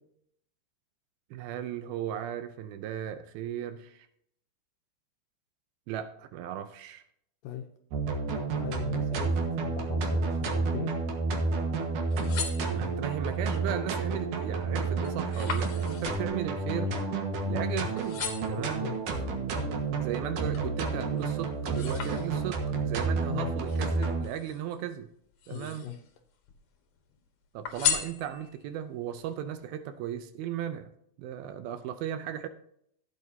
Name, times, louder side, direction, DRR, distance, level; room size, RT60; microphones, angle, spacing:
voice 1, 1.3-4.1 5.9-7.0 12.6-16.9 17.5-18.9 20.0-25.1 25.5-25.9 27.5-30.9 31.2-32.5, right 10 dB, 80° right, 10 dB, 2.4 m, -36 dB
sound 1, 7.9-24.2, right 3 dB, 60° right, 2.7 m, -30 dB
voice 2, 8.6-10.9 18.6-19.0 23.2-23.5 25.5-26.0, left 10 dB, 75° left, 4 dB, 2.1 m, -39 dB
sound 2, 11.9-13.2 13.8-14.2 14.6-17.7 18.0-18.7 19.3-20.8 21.2-22.7 23.6-24.8 25.3-26.1 26.4-27.2 27.6-28.7 29.2-29.3, left 8 dB, 60° left, 2.0 m, -37 dB
15.0 x 8.6 x 2.8 m, 0.71 s
omnidirectional pair, 4.7 m